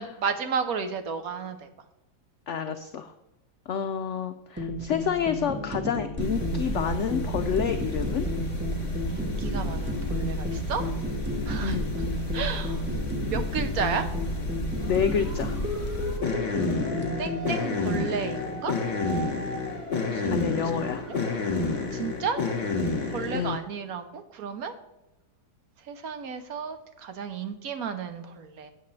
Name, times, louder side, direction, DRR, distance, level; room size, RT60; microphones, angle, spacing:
voice 1, 0.0-1.7 9.1-10.9 11.5-12.1 12.3-12.8 13.3-14.1 17.2-18.7 19.9-21.2 21.9-22.4 23.1-24.7 25.9-28.7, right 6 dB, 65° right, 8 dB, 1.2 m, -33 dB
voice 2, 2.5-3.1 3.7-8.3 11.6-11.9 14.9-15.6 20.3-21.1 23.3-23.6, left 8 dB, 85° left, 8 dB, 0.6 m, -29 dB
sound 1, 4.6-17.4, equal, 10° right, 0.8 m, -33 dB
sound 2, 6.2-23.6, left 2 dB, 35° left, 2.0 m, -30 dB
sound 3, 14.8-22.0, right 1 dB, 25° right, 4.2 m, -42 dB
12.5 x 8.3 x 3.2 m, 0.92 s
omnidirectional pair, 1.8 m